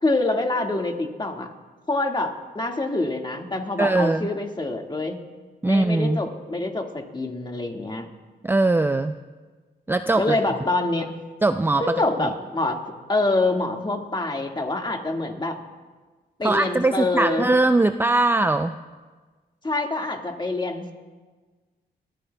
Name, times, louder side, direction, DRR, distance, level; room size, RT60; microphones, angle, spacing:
voice 1, 0.0-1.5 1.9-5.2 5.6-8.1 10.2-11.1 11.8-12.8 13.1-15.6 16.4-17.5 19.6-20.9, left 2 dB, 25° left, 2 dB, 1.9 m, -25 dB
voice 2, 3.8-4.3 5.6-6.2 8.4-9.2 9.9-10.4 11.4-11.8 12.2-12.3 16.4-18.7, right 2 dB, 10° right, 9 dB, 0.4 m, -21 dB
21.0 x 13.5 x 2.3 m, 1.4 s
cardioid pair, 60°, 18 cm